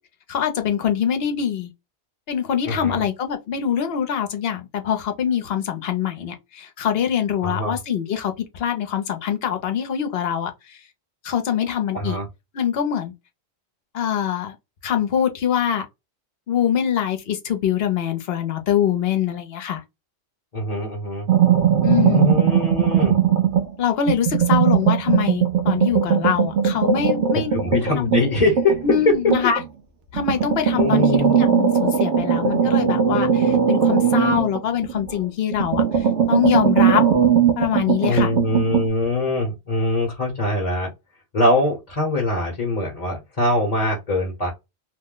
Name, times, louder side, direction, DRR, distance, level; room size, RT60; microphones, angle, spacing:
voice 1, 0.3-1.7 2.3-10.8 11.2-12.2 12.5-13.1 13.9-14.5 14.8-15.9 16.5-19.8 21.8-22.3 23.8-27.6 28.8-29.6 30.1-37.0 37.6-38.3, left 9 dB, 65° left, 1.0 m, -24 dB
voice 2, 2.7-3.0 7.4-7.8 11.9-12.3 20.5-21.3 22.0-23.1 27.5-28.8 30.8-31.4 38.1-40.9 41.3-44.5, left 2 dB, 40° left, 1.0 m, -23 dB
sound 1, 21.3-23.7 24.1-29.7 30.1-35.2 35.5-38.9, right 8 dB, 80° right, 1.0 m, -19 dB
2.9 x 2.1 x 3.7 m
omnidirectional pair, 1.1 m